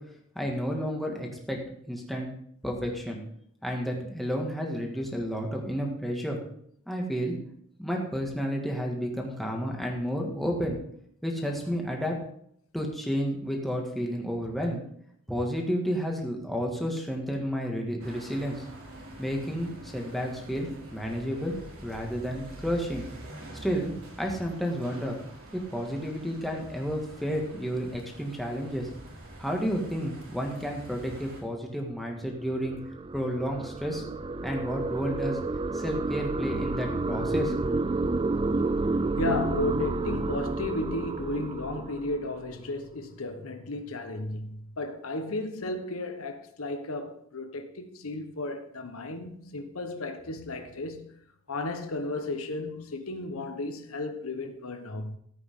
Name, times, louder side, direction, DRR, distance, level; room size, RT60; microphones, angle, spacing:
voice 1, 0.4-1.6 1.8-2.3 2.6-3.2 3.6-6.4 6.9-7.3 7.8-10.8 11.2-12.1 12.7-14.8 15.3-18.6 19.2-21.5 21.8-23.1 23.5-23.9 24.2-25.2 25.5-28.9 29.4-32.8 33.1-34.0 34.4-35.4 35.7-37.5 37.8-37.9, equal, ahead, 2.0 m, -31 dB
sound 1, 18.0-31.4, right 1 dB, 80° right, 3.8 m, -46 dB
sound 2, 32.0-42.6, right 3 dB, 25° right, 0.4 m, -30 dB
voice 2, 39.2-51.2 51.5-55.2, left 2 dB, 80° left, 1.2 m, -34 dB
14.5 x 8.7 x 3.8 m
head